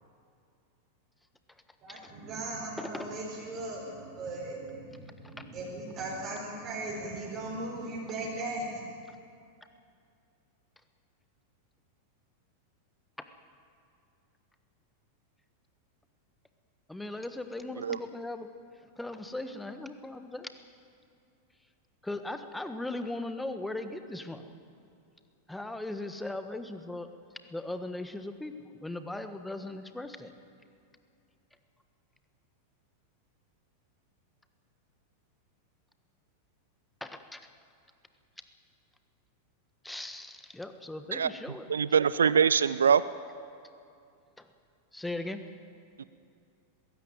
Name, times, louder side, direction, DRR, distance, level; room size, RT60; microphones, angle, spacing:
voice 1, 1.8-8.9, right 2 dB, 35° right, -5 dB, 5.1 m, -38 dB
voice 2, 16.9-18.5 19.0-20.5 22.0-24.5 25.5-27.1 27.5-30.3 37.0-37.4 39.8-41.7 42.2-42.4 44.4-44.5 44.9-45.4, left 2 dB, 5° left, 8 dB, 1.4 m, -38 dB
voice 3, 41.7-43.0 46.0-46.1, right 7 dB, 70° right, 17 dB, 0.4 m, -23 dB
20.0 x 16.0 x 9.2 m, 2.5 s
figure-of-eight pair, 90°, 0 cm